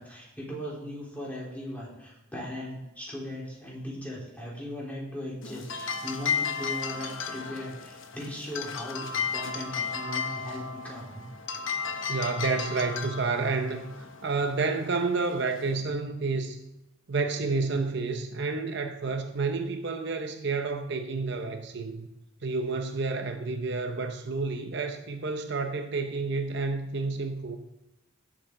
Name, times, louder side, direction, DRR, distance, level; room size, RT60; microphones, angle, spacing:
voice 1, 0.0-11.2 11.9-12.1, left 1 dB, 5° left, 3.6 m, -38 dB
sound 1, 5.4-15.8, left 6 dB, 75° left, 0.9 m, -34 dB
voice 2, 12.1-13.8 14.2-16.6 17.1-22.1 22.4-27.6, right 4 dB, 60° right, 0.8 m, -30 dB
16.5 x 7.5 x 3.8 m
head